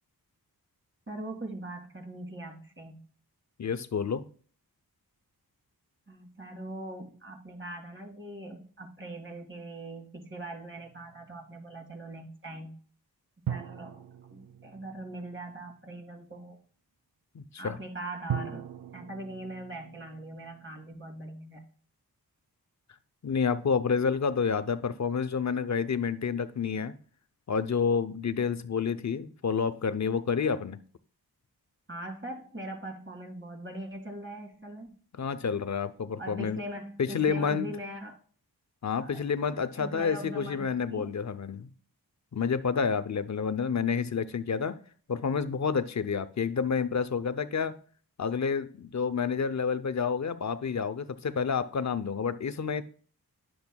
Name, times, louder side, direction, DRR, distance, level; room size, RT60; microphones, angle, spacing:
voice 1, 1.1-3.0 6.1-12.8 13.5-14.0 14.3-16.6 17.6-18.7 18.9-21.6 31.9-35.0 36.2-38.2 39.0-39.2 39.7-41.2, right 1 dB, 30° right, 2.2 m, -41 dB
voice 2, 3.6-4.2 17.3-17.8 23.2-26.9 27.5-30.8 35.2-36.6 37.0-37.7 38.8-41.7 42.3-44.8 45.1-47.8 48.2-52.8, left 6 dB, 45° left, 0.6 m, -29 dB
sound 1, 10.8-11.7 13.5-15.8 18.3-21.3, right 9 dB, 65° right, 0.6 m, -40 dB
10.5 x 6.9 x 2.3 m
cardioid pair, 60°, 38 cm